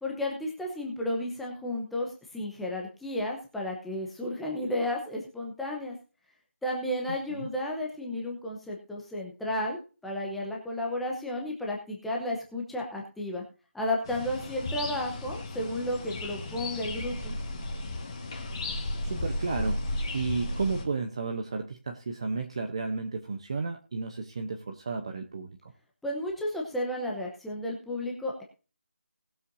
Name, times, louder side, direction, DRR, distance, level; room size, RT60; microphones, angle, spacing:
voice 1, 0.0-6.0 6.6-13.4 13.7-17.4 26.0-28.4, left 1 dB, ahead, -2 dB, 0.8 m, -33 dB
sound 1, 14.0-20.9, left 1 dB, 20° left, 1.9 m, -34 dB
voice 2, 19.0-19.8 20.1-25.7, right 4 dB, 25° right, 5 dB, 0.8 m, -33 dB
19.5 x 7.5 x 2.7 m, 0.35 s
figure-of-eight pair, 175°, 7 cm